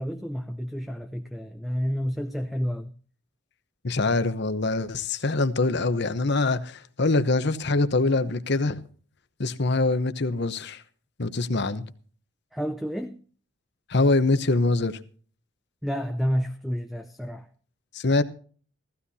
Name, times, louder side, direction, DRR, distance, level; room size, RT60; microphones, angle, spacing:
voice 1, 0.0-2.9 12.5-13.2 15.8-17.5, equal, ahead, 0.5 m, -30 dB
voice 2, 3.8-8.8 9.4-10.8 11.2-11.9 13.9-15.0 17.9-18.2, left 3 dB, 55° left, 0.9 m, -24 dB
16.5 x 15.5 x 2.8 m
head